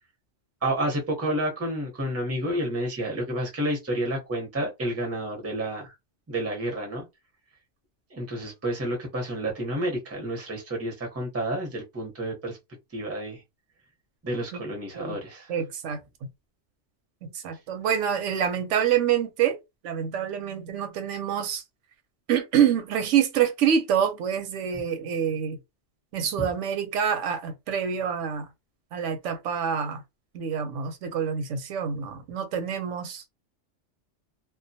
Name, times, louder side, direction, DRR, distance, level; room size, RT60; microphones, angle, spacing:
voice 1, 0.6-5.9 6.3-7.1 8.1-12.6 12.9-13.4 14.2-15.5, right 1 dB, 15° right, 0.6 m, -30 dB
voice 2, 15.5-16.0 17.2-19.6 19.8-21.6 22.3-25.6 26.1-28.5 28.9-30.0 30.3-33.2, right 8 dB, 90° right, 0.9 m, -26 dB
2.2 x 2.2 x 2.7 m
omnidirectional pair, 1.2 m